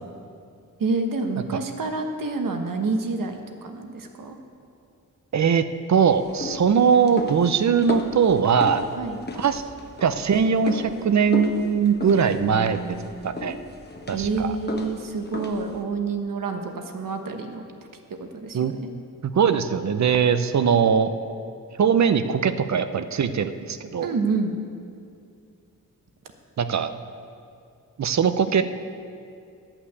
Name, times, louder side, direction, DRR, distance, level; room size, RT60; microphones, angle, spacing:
voice 1, 0.8-4.4 9.0-9.2 12.2-13.0 14.1-17.6 18.3-18.9 24.0-24.5, right 4 dB, 70° right, 5 dB, 1.2 m, -28 dB
voice 2, 5.3-8.8 9.3-9.6 10.0-13.0 13.2-13.6 14.1-14.5 18.5-18.7 19.2-21.1 21.8-24.1 26.6-26.9 28.0-28.6, right 6 dB, 55° right, 10 dB, 0.7 m, -21 dB
sound 1, 6.1-15.8, left 3 dB, 30° left, 1.1 m, -35 dB
11.5 x 5.9 x 8.2 m, 2.4 s
cardioid pair, 80°, 34 cm